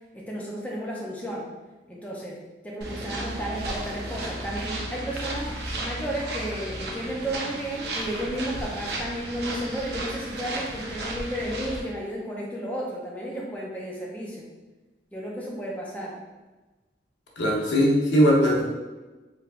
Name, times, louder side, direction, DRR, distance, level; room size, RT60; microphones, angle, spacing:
voice 1, 0.1-1.5 1.9-2.4 2.6-14.5 15.1-16.2, right 1 dB, 10° left, -4 dB, 0.5 m, -33 dB
sound 1, 2.8-11.8, right 1 dB, 65° right, 0.6 m, -34 dB
voice 2, 17.4-18.6, equal, 85° left, -2 dB, 0.8 m, -20 dB
3.4 x 3.4 x 2.4 m, 1.2 s
head